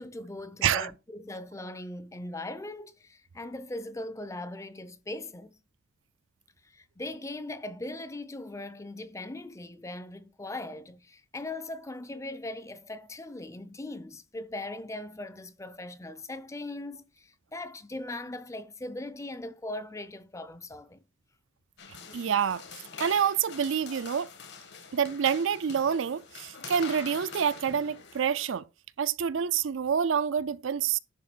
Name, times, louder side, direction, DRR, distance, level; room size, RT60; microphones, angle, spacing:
voice 1, 0.0-5.6 6.6-21.0, left 2 dB, 15° left, 0.6 m, -40 dB
sound 1, 21.8-28.6, left 5 dB, 60° left, 1.5 m, -45 dB
voice 2, 22.1-22.6 23.0-24.3 24.9-28.7 29.0-31.0, right 7 dB, 70° right, 0.4 m, -27 dB
10.5 x 3.5 x 6.1 m
head